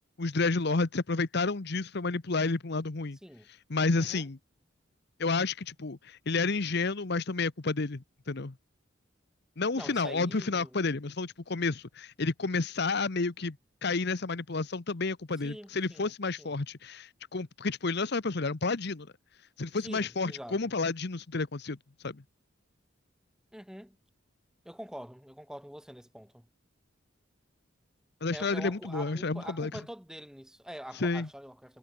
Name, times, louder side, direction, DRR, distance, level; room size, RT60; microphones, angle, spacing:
voice 1, 0.2-3.2 3.7-4.4 5.2-8.5 9.6-13.6 13.8-19.1 19.6-21.8 22.0-22.2 28.2-29.7 30.9-31.3, left 3 dB, 55° left, 1.0 m, -30 dB
voice 2, 9.7-10.8 15.4-16.1 16.4-16.5 19.7-20.6 23.5-24.0 24.6-26.5 28.3-31.8, equal, 5° right, 6.5 m, -45 dB
head